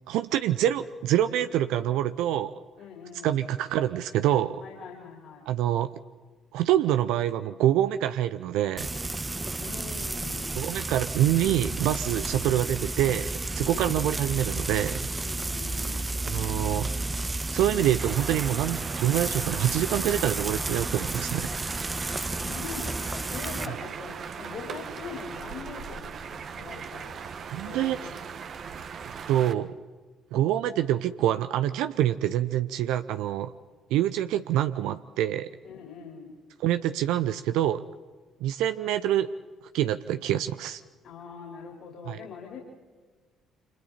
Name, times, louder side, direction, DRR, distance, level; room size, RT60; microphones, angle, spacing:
voice 1, 0.1-2.5 3.2-4.6 5.5-5.9 6.5-8.9 10.6-15.1 16.2-17.1 17.5-21.5 27.5-28.0 29.3-29.8 30.3-33.5 33.9-35.5 36.6-37.8 38.4-39.3 39.7-40.8 42.1-42.2, right 12 dB, 70° right, 11 dB, 0.6 m, -26 dB
voice 2, 2.8-3.5 4.6-5.6 9.6-10.5 13.6-13.9 15.2-16.1 22.0-27.2 27.6-28.2 35.6-36.4 41.0-42.6, left 6 dB, 55° left, -1 dB, 4.4 m, -43 dB
Frying (food), 8.8-23.7, right 2 dB, 20° right, 0.9 m, -32 dB
sound 1, 18.0-29.5, right 6 dB, 50° right, 1.4 m, -39 dB
29.0 x 26.5 x 4.3 m, 1.4 s
hypercardioid pair, 50°, 0 cm